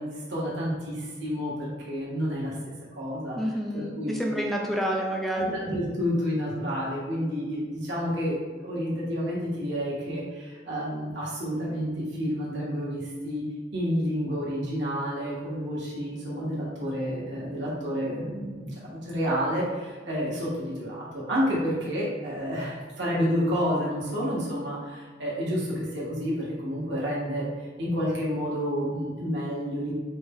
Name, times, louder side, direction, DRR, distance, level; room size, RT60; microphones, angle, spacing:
voice 1, 0.0-4.2 5.4-8.4 8.6-13.4 13.7-29.9, equal, 65° right, -7 dB, 1.2 m, -30 dB
voice 2, 3.4-5.5, equal, ahead, -1 dB, 0.4 m, -28 dB
4.4 x 2.2 x 3.5 m, 1.4 s
head